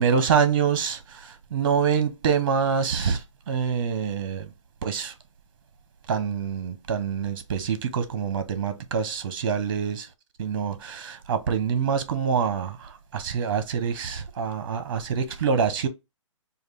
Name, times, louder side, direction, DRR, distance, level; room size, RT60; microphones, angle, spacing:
voice 1, 0.0-4.5 4.8-5.1 6.1-10.1 10.4-15.9, right 6 dB, 45° right, 0.8 m, -26 dB
4.9 x 2.3 x 3.4 m
hypercardioid pair, 160°, 17 cm